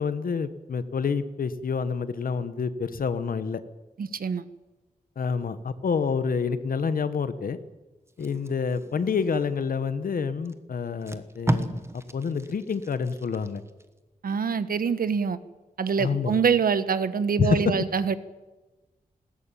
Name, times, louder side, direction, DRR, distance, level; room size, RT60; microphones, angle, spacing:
voice 1, 0.0-3.6 5.2-7.6 8.2-13.6 16.0-16.4 17.4-17.7, left 5 dB, 70° left, 13 dB, 1.2 m, -28 dB
voice 2, 4.0-4.4 14.2-15.4 15.8-18.2, right 6 dB, 75° right, 14 dB, 1.2 m, -25 dB
Packing tape duct tape, 8.1-9.7 10.4-10.5 10.9-13.9 14.3-14.5, right 1 dB, 15° right, 1.2 m, -34 dB
20.0 x 17.0 x 9.0 m, 1.2 s
wide cardioid pair, 175°, 15 cm